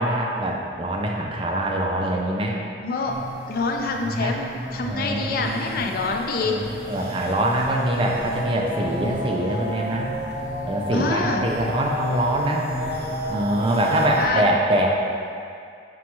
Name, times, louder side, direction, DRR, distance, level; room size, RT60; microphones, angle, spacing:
voice 1, 0.0-2.6 4.0-4.4 4.8-5.9 6.5-10.1 10.6-12.7 13.3-14.9, right 1 dB, 30° right, -1 dB, 0.4 m, -24 dB
voice 2, 2.8-3.2 3.5-6.6 10.9-11.4 14.2-14.4, left 3 dB, 55° left, 2 dB, 0.4 m, -26 dB
sound 1, 3.1-14.3, equal, 10° right, 1.0 m, -36 dB
sound 2, 8.1-14.1, equal, 60° right, 0.7 m, -32 dB
6.0 x 2.3 x 2.9 m, 2.3 s
head